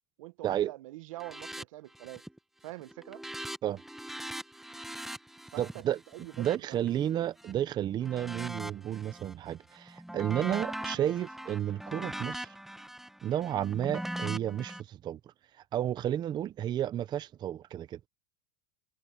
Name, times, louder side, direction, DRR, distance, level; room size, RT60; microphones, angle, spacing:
voice 1, 0.2-2.2 2.6-3.2 5.5-5.8 6.1-6.8 10.9-11.1, right 18 dB, 85° right, 1.0 m, -44 dB
sound 1, 1.2-1.7 1.9-2.4 2.7-7.5 8.0-9.3 9.7-14.8, right 1 dB, ahead, 1.0 m, -41 dB
voice 2, 5.6-6.0 6.4-12.5 13.2-15.2 15.7-18.0, right 11 dB, 25° right, 0.6 m, -32 dB
supercardioid pair, 150°, 17 cm